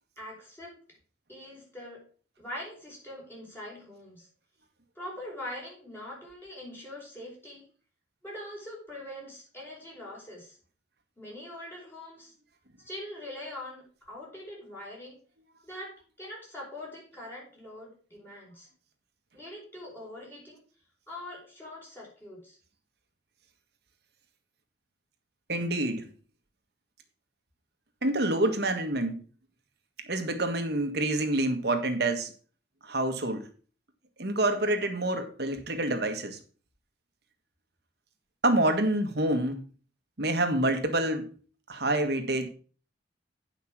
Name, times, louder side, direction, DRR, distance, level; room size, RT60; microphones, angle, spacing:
voice 1, 0.2-0.8 1.3-2.1 2.4-4.3 5.0-7.7 8.2-10.6 11.2-12.3 12.9-15.2 15.6-18.7 19.3-20.6 21.1-22.6, left 1 dB, 10° left, -4 dB, 5.2 m, -43 dB
voice 2, 25.5-26.1 28.0-29.2 30.0-32.3 32.8-33.4 34.2-36.4 38.4-39.6 40.2-41.3 41.7-42.5, right 1 dB, 60° right, 6 dB, 1.6 m, -27 dB
8.9 x 5.8 x 6.1 m, 0.40 s
head